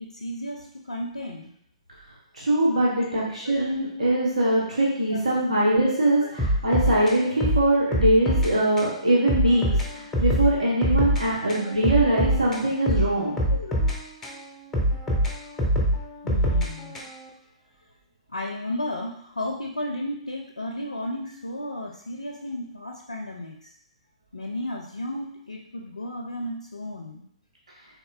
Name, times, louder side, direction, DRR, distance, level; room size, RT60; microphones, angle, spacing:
voice 1, 0.0-1.5 3.4-3.5 4.8-5.2 6.2-6.3 9.1-9.2 10.1-10.2 11.6-11.8 13.5-13.7 15.4-15.6 16.2-17.0 18.3-23.7 24.3-27.3, left 1 dB, 85° left, 2 dB, 0.4 m, -34 dB
voice 2, 2.3-9.6 10.2-13.4, right 1 dB, 80° right, -5 dB, 1.1 m, -22 dB
sound 1, 6.4-8.5 8.8-8.9 9.3-11.2 11.5-14.4 14.7-17.3, equal, 10° left, 0.9 m, -24 dB
4.2 x 3.5 x 2.4 m, 0.69 s
figure-of-eight pair, 120°, 4 cm